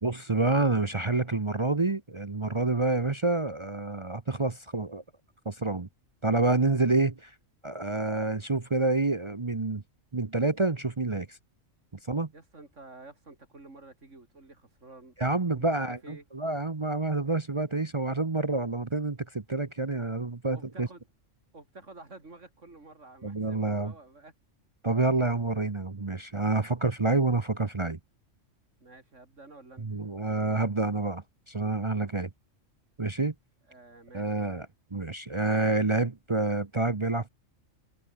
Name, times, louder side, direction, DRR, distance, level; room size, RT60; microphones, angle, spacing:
voice 1, 0.0-5.0 5.4-5.9 6.2-7.3 7.6-9.8 10.1-11.4 12.1-12.3 15.2-20.9 23.2-23.9 24.8-28.0 29.8-32.3 33.0-33.3 34.1-34.7 34.9-37.3, right 3 dB, 25° right, 0.9 m, -28 dB
voice 2, 12.3-15.1 15.5-16.2 20.5-21.1 21.5-24.3 28.8-29.9 33.7-34.6, right 2 dB, 70° right, 4.3 m, -50 dB
omnidirectional pair, 1.3 m